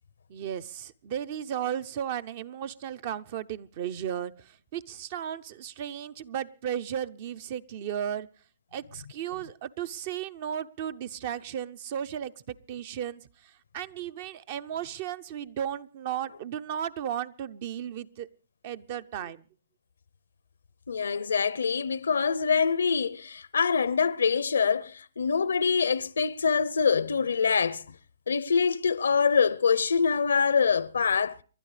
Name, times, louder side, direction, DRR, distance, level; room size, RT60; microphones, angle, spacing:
voice 1, 0.3-8.3 8.7-18.3 18.6-19.4, right 9 dB, 45° right, 0.7 m, -35 dB
voice 2, 20.9-27.8 28.3-31.4, left 6 dB, 80° left, 0.6 m, -25 dB
30.0 x 12.0 x 3.3 m
hypercardioid pair, 130°, 0 cm